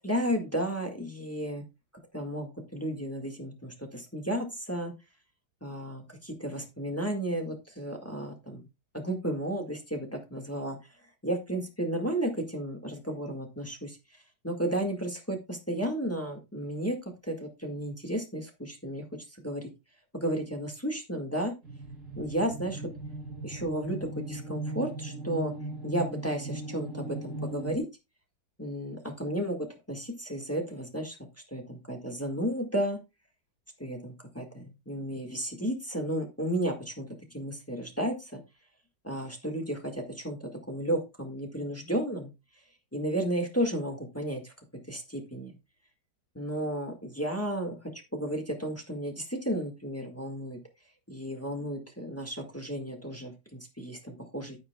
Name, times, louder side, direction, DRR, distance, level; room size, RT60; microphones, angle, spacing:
voice 1, 0.0-1.6 2.1-4.9 5.6-8.7 8.9-10.8 11.2-14.0 14.4-17.0 17.2-19.7 20.1-21.5 22.2-22.8 23.4-25.5 25.8-27.8 28.6-31.2 31.5-33.0 33.8-38.4 39.0-42.3 42.9-44.5 44.9-45.5 46.3-47.8 48.1-50.6 51.1-54.6, right 1 dB, 10° left, 3 dB, 1.6 m, -33 dB
sound 1, 21.6-27.8, right 2 dB, 45° right, 2.3 m, -38 dB
10.0 x 9.4 x 2.3 m, 0.25 s
omnidirectional pair, 1.9 m